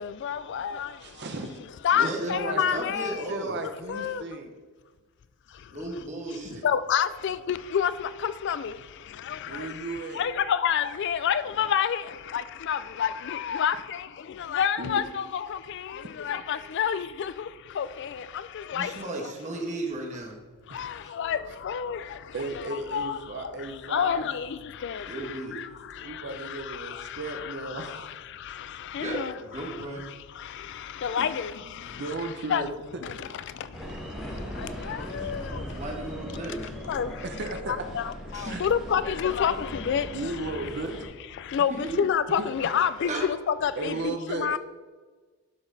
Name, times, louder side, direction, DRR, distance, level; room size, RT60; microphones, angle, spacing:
voice 1, 0.0-1.3 1.8-3.2 3.9-4.3 5.5-6.0 6.6-19.3 20.7-29.3 29.7-32.7 33.0-35.8 36.9-37.3 37.7-40.8 41.3-44.6, left 8 dB, 50° left, 0.3 m, -30 dB
voice 2, 1.0-1.6 1.9-4.5 6.5-6.6 9.5-10.2 13.5-13.6 14.8-15.0 20.7-20.9 22.3-24.3 26.0-28.1 31.2-31.3 31.8-32.7 32.9-33.0 35.2-35.3 35.6-35.8 37.2-37.8 38.4-38.6 40.1-40.9 42.4-42.5 43.8-44.6, right 2 dB, 50° right, 0.7 m, -35 dB
voice 3, 2.0-3.6 5.7-6.7 18.7-20.4 21.0-21.1 25.1-25.6 29.0-30.0 35.8-36.7 38.3-38.6 41.7-41.9 43.1-43.3, right 2 dB, 30° right, 1.5 m, -35 dB
sound 1, 33.7-41.1, equal, ahead, 1.7 m, -39 dB
11.0 x 6.0 x 4.0 m
head